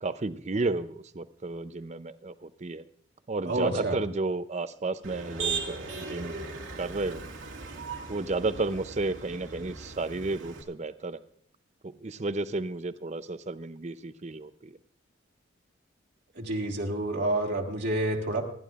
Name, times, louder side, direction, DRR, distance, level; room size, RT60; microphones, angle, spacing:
voice 1, 0.0-2.8 3.3-6.4 6.8-7.2 8.1-11.2 11.8-14.7, right 3 dB, 35° right, 13 dB, 0.5 m, -32 dB
voice 2, 3.5-3.9 16.4-18.4, right 1 dB, 55° right, -1 dB, 1.7 m, -29 dB
Motor vehicle (road), 5.0-10.6, right 4 dB, 85° right, 2.2 m, -38 dB
28.0 x 11.0 x 2.4 m, 0.64 s
head